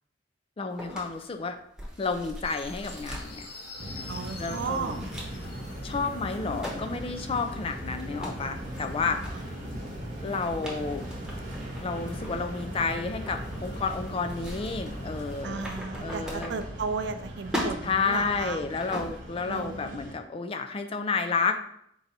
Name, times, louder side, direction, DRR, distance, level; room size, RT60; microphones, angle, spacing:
voice 1, 0.6-1.6 2.0-3.5 4.4-5.0 5.8-9.2 10.2-11.0 11.8-15.7 16.0-16.6 17.8-21.6, left 4 dB, 30° left, 7 dB, 0.4 m, -31 dB
sound 1, 0.8-17.2 17.4-19.4, equal, 5° right, 0.9 m, -41 dB
sound 2, 2.4-15.4, left 2 dB, 60° left, 0.8 m, -48 dB
sound 3, 3.8-20.1, equal, 50° right, 1.0 m, -38 dB
voice 2, 4.1-5.0 9.3-9.4 15.4-18.6 19.5-20.0, right 5 dB, 70° right, 9 dB, 0.4 m, -34 dB
4.6 x 2.6 x 4.1 m, 0.71 s
head